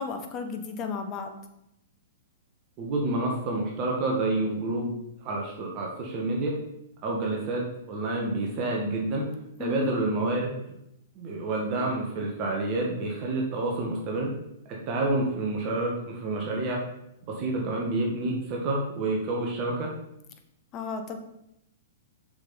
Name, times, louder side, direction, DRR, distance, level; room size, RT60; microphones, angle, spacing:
voice 1, 0.0-1.4 9.6-9.9 20.7-21.2, left 4 dB, 30° left, 6 dB, 1.1 m, -33 dB
voice 2, 2.8-4.9 5.2-6.5 7.0-9.3 9.6-10.6 11.2-14.3 14.7-16.8 17.3-19.9, right 2 dB, 35° right, -1 dB, 1.8 m, -28 dB
6.8 x 5.9 x 4.3 m, 0.82 s
figure-of-eight pair, 110°, 0 cm